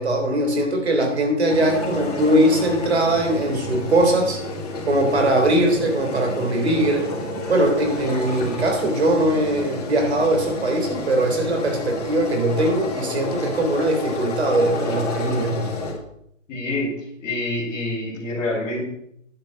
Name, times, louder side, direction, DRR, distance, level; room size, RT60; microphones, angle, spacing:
voice 1, 0.0-4.4 4.9-7.1 7.5-15.7, right 1 dB, 55° right, 4 dB, 3.7 m, -21 dB
sound 1, 1.5-15.9, left 2 dB, 30° left, 3.0 m, -30 dB
voice 2, 16.5-16.9 17.2-18.8, left 2 dB, 10° left, -8 dB, 2.2 m, -26 dB
10.5 x 7.4 x 7.5 m, 0.73 s
hypercardioid pair, 180°, 38 cm